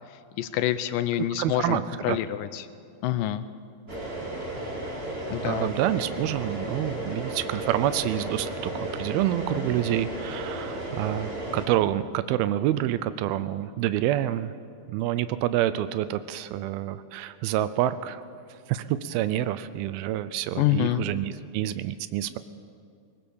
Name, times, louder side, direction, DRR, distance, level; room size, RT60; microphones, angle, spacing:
voice 1, 0.4-2.7 3.0-3.4 5.3-5.7 20.6-21.0, left 13 dB, 75° left, 13 dB, 2.2 m, -26 dB
voice 2, 1.2-1.8 2.1-2.2 5.4-14.5 14.9-18.2 18.5-22.4, right 13 dB, 85° right, 13 dB, 2.5 m, -27 dB
sound 1, 3.9-11.7, right 1 dB, 20° right, 2.3 m, -34 dB
21.0 x 18.5 x 7.1 m, 2.3 s
omnidirectional pair, 4.2 m